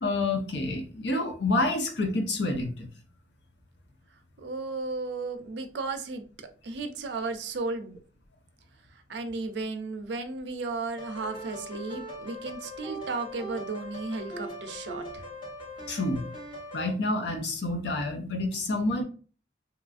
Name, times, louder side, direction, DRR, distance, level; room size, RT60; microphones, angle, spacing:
voice 1, 0.0-2.9 15.9-16.2 16.7-19.0, left 2 dB, 80° left, 5 dB, 0.6 m, -28 dB
voice 2, 4.4-6.2 6.6-8.0 8.9-15.2, right 3 dB, 80° right, 7 dB, 0.4 m, -34 dB
sound 1, 11.0-16.9, equal, 30° left, 0.9 m, -40 dB
2.9 x 2.4 x 2.4 m, 0.39 s
head